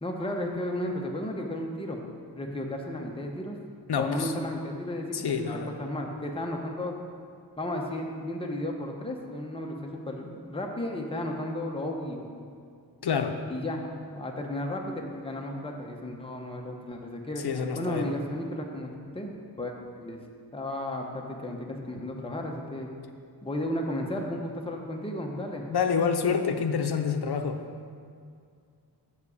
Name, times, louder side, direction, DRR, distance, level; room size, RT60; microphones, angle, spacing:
voice 1, 0.0-2.0 2.3-3.5 4.0-6.9 7.6-12.3 13.5-17.5 17.8-19.3 19.6-19.7 20.0-20.2 20.5-22.9 23.4-25.7, left 1 dB, 15° left, 1 dB, 0.9 m, -33 dB
voice 2, 3.9-4.3 5.1-5.8 13.0-13.4 17.4-18.1 25.7-27.6, left 6 dB, 70° left, 6 dB, 0.7 m, -27 dB
7.4 x 4.9 x 6.9 m, 2.3 s
wide cardioid pair, 75°, 40 cm